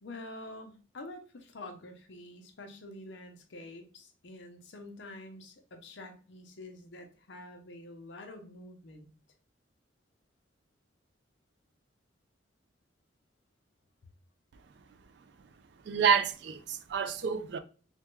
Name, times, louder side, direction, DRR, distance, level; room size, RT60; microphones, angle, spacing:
voice 1, 0.0-9.1, left 2 dB, 65° left, 0.6 m, -47 dB
voice 2, 15.8-17.6, right 6 dB, 60° right, 0.3 m, -28 dB
3.3 x 2.2 x 3.0 m
head